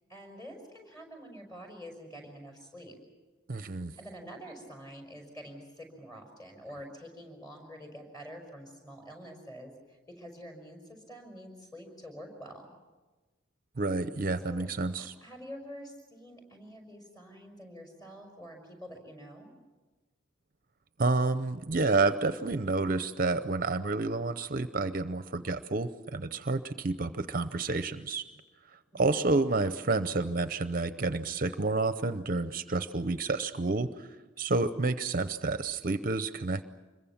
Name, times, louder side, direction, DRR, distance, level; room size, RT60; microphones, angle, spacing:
voice 1, 0.1-3.0 4.0-12.7 14.4-14.7 15.0-19.5 28.9-29.4, equal, 20° left, 1 dB, 5.7 m, -47 dB
voice 2, 3.5-3.9 13.8-15.1 21.0-28.3 28.9-34.1 34.4-36.6, right 3 dB, 45° right, 11 dB, 0.7 m, -29 dB
26.0 x 22.5 x 7.3 m, 1.3 s
head